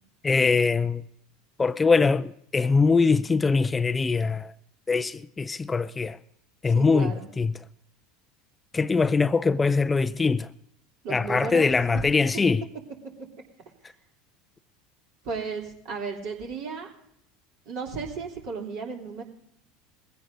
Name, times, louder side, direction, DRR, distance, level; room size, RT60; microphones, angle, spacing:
voice 1, 0.2-1.0 1.6-4.5 4.9-6.2 6.6-7.5 8.7-10.5 11.1-12.6, left 4 dB, 20° left, 0.4 m, -22 dB
voice 2, 6.7-7.3 11.0-11.7 11.9-12.0 15.2-16.9 17.6-19.2, right 5 dB, 60° right, 3.0 m, -34 dB
21.0 x 16.0 x 2.6 m
hypercardioid pair, 80°, 0 cm